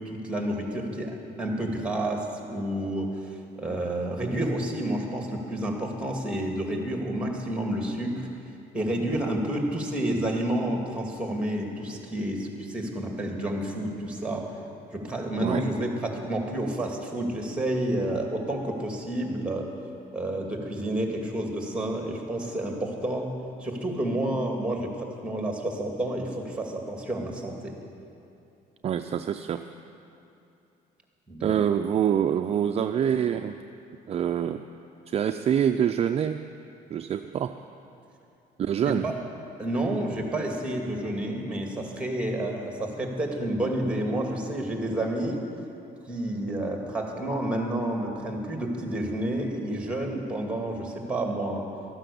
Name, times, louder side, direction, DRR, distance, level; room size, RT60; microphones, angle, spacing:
voice 1, 0.0-8.3 8.7-14.5 14.9-19.7 20.1-23.3 23.6-27.8 31.3-31.6 38.8-39.1 39.6-45.4 46.1-51.7, right 1 dB, 5° right, 2 dB, 2.1 m, -30 dB
voice 2, 28.8-29.7 31.4-33.6 34.1-34.6 35.1-36.5 36.9-37.6 38.6-39.1, right 9 dB, 40° right, 7 dB, 0.4 m, -25 dB
13.5 x 9.7 x 6.9 m, 2.8 s
cardioid pair, 110°, 17 cm